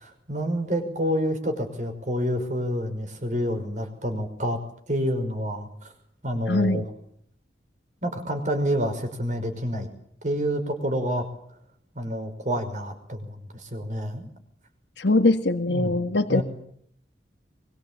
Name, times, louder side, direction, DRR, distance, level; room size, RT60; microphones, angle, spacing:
voice 1, 0.0-4.6 4.9-5.9 6.2-6.9 8.0-9.9 10.2-11.3 12.0-14.3 15.7-16.4, equal, 45° right, 6 dB, 5.7 m, -28 dB
voice 2, 6.5-6.8 15.0-16.4, left 2 dB, 85° left, 7 dB, 1.7 m, -22 dB
24.0 x 22.5 x 9.0 m, 0.69 s
head